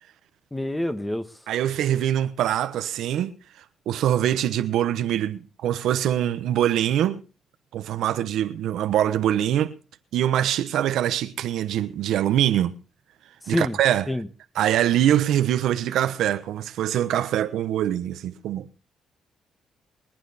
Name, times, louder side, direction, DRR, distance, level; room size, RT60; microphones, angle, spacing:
voice 1, 0.5-1.3 13.4-13.8 14.1-14.3, left 1 dB, 10° left, 1.4 m, -26 dB
voice 2, 1.5-3.3 3.9-7.2 7.7-9.7 10.1-12.7 13.5-14.1 14.6-18.7, right 11 dB, 80° right, 1.0 m, -23 dB
23.0 x 9.2 x 4.2 m
cardioid pair, 90°, 0 cm